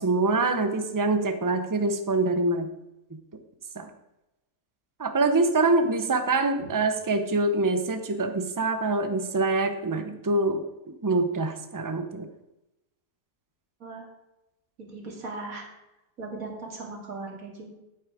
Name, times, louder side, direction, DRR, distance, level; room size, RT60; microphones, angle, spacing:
voice 1, 0.0-2.7 3.8-3.9 5.0-10.6 11.0-12.2, right 3 dB, 20° right, 8 dB, 0.5 m, -25 dB
voice 2, 14.8-15.7 16.2-17.7, right 3 dB, 65° right, 0 dB, 2.6 m, -38 dB
8.8 x 8.6 x 4.9 m, 0.95 s
omnidirectional pair, 1.6 m